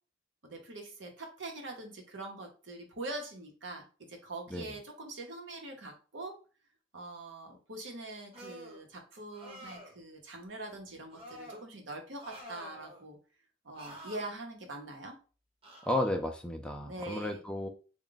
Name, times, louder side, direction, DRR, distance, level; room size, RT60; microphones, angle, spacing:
voice 1, 0.4-6.4 6.9-13.2 13.6-15.2 16.8-17.4, right 2 dB, 70° right, 2 dB, 0.9 m, -43 dB
sound 1, 8.3-8.8 9.3-10.0 11.1-11.6 12.2-13.0 13.7-14.2 15.6-16.1, right 1 dB, 30° right, 1.0 m, -48 dB
voice 2, 15.8-17.7, left 1 dB, 5° left, 4 dB, 0.3 m, -33 dB
3.5 x 2.3 x 3.8 m, 0.36 s
head